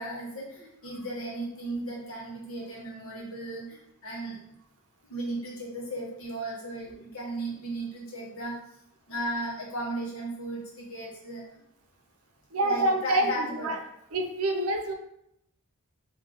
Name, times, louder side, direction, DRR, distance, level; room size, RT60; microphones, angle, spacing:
voice 1, 0.0-3.8 4.0-4.4 5.1-8.5 9.1-11.4 12.6-13.7, right 1 dB, 70° left, -5 dB, 1.3 m, -35 dB
voice 2, 12.5-13.8 14.1-14.9, right 1 dB, 80° right, 3 dB, 0.6 m, -26 dB
3.7 x 2.7 x 3.5 m, 0.80 s
head